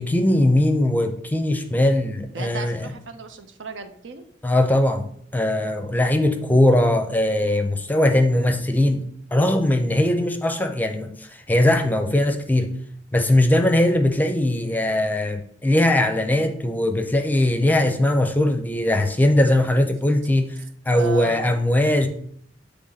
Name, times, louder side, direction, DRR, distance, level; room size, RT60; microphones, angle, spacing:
voice 1, 0.0-2.9 4.4-9.0 9.3-12.7 13.1-20.5 20.9-22.1, left 1 dB, 10° left, 6 dB, 0.5 m, -20 dB
voice 2, 2.3-4.2 8.3-8.6 21.0-21.5, right 5 dB, 85° right, 7 dB, 0.7 m, -35 dB
7.7 x 3.4 x 4.0 m, 0.65 s
head